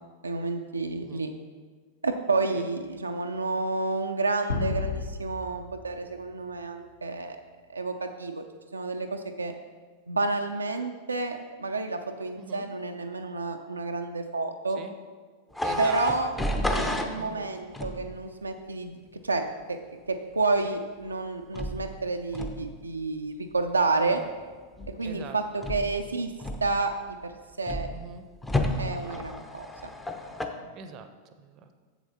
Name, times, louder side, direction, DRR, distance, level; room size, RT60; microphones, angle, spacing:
voice 1, 0.2-1.3 2.0-7.4 7.7-8.4 8.7-9.5 10.1-14.8 15.8-16.3 16.7-19.0 19.2-19.8 20.1-24.2 25.0-26.3 26.6-27.3 27.6-27.9 28.8-29.9, right 3 dB, 80° right, 4 dB, 0.5 m, -30 dB
sound 1, 4.5-6.9, left 3 dB, 75° left, 1.5 m, -33 dB
voice 2, 12.2-12.7 14.7-15.0 15.6-16.0 16.4-16.5 17.2-17.5 20.6-20.8 23.5-23.6 24.0-24.3 25.0-25.7 27.9-28.3 30.7-31.1 31.4-31.7, right 6 dB, 35° right, 8 dB, 0.7 m, -43 dB
sound 2, 15.5-17.1 17.7-18.1 21.5-21.9 22.3-22.7 24.8-25.1 25.6-26.0 26.4-26.9 27.6-28.0 28.4-30.5, left 1 dB, 10° left, 0.7 m, -31 dB
7.7 x 7.1 x 4.1 m, 1.5 s
figure-of-eight pair, 90°, 0 cm